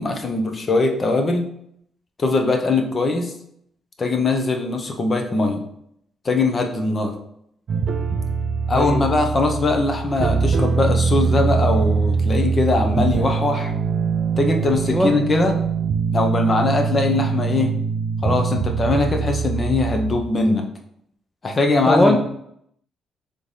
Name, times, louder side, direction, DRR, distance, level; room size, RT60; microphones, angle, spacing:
voice 1, 0.0-1.5 2.2-3.3 4.0-5.6 6.2-7.1 8.7-13.7 14.4-15.5 16.1-17.7 18.2-20.6 21.4-22.2, left 2 dB, 35° left, 4 dB, 0.8 m, -21 dB
sound 1, 7.7-20.2, right 5 dB, 60° right, 0.4 m, -22 dB
voice 2, 8.7-9.1 14.9-15.1 21.9-22.2, left 1 dB, 10° left, 2 dB, 0.4 m, -18 dB
3.6 x 3.3 x 4.1 m, 0.72 s
cardioid pair, 90°, 0 cm